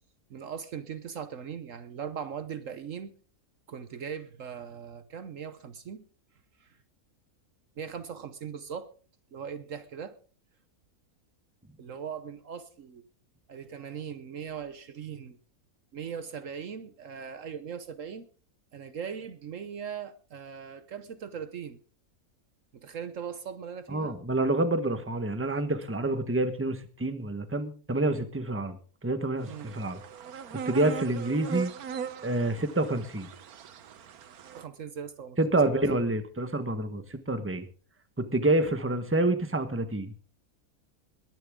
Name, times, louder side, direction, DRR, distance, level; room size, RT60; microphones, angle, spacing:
voice 1, 0.3-3.1 3.7-6.0 6.6-6.7 7.8-8.9 9.3-10.2 11.8-13.0 13.5-15.4 15.9-18.3 18.7-21.8 22.7-24.2 29.5-29.7 34.5-35.4, right 7 dB, 60° right, 1.2 m, -39 dB
voice 2, 23.9-28.8 29.0-30.0 30.5-31.7 32.2-33.3 35.4-37.6 38.3-40.1, right 2 dB, 10° right, 1.2 m, -28 dB
sound 1, 29.4-34.6, right 7 dB, 75° right, 1.4 m, -39 dB
21.5 x 10.5 x 3.7 m
omnidirectional pair, 1.6 m